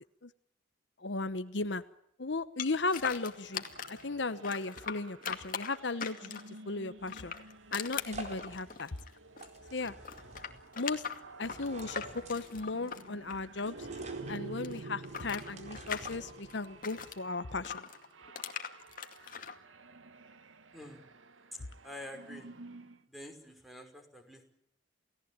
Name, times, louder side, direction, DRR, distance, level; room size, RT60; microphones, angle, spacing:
voice 1, 1.0-1.8 2.2-3.6 3.9-6.4 6.7-7.3 7.7-8.9 9.7-9.9 10.8-11.0 11.4-13.9 14.3-17.9, left 3 dB, 65° left, 13 dB, 1.0 m, -36 dB
sound 1, 2.6-4.0 4.4-6.6 7.0-9.6 9.8-14.0 14.3-17.2 17.6-19.5, left 7 dB, 45° left, 2.3 m, -41 dB
sound 2, 3.2-23.0, right 3 dB, 90° right, 1.6 m, -50 dB
sound 3, 7.0-16.8, right 1 dB, 35° right, 4.6 m, -50 dB
voice 2, 21.8-22.5 23.1-24.4, left 1 dB, ahead, 5 dB, 5.4 m, -47 dB
29.5 x 17.5 x 8.9 m, 0.75 s
head